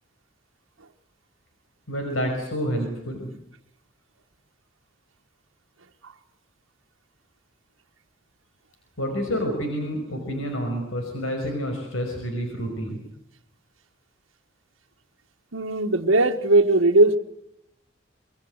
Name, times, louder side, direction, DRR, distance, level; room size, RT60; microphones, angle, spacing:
voice 1, 1.9-3.3 9.0-13.0, equal, 80° left, 3 dB, 5.4 m, -28 dB
voice 2, 15.5-17.2, right 2 dB, 85° right, 1 dB, 1.4 m, -19 dB
25.5 x 22.0 x 7.9 m, 0.77 s
head